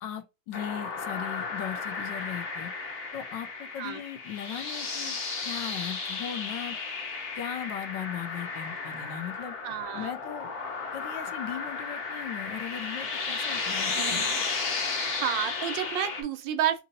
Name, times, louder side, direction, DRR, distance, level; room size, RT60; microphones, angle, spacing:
voice 1, 0.0-2.7 3.1-6.8 7.3-9.6 9.9-10.6 10.9-14.2, left 10 dB, 75° left, 1.3 m, -38 dB
sound 1, 0.5-16.2, left 4 dB, 45° left, 1.1 m, -34 dB
voice 2, 9.6-10.1 13.9-14.4 15.2-16.8, right 10 dB, 80° right, 1.4 m, -30 dB
3.9 x 2.7 x 2.6 m
omnidirectional pair, 2.0 m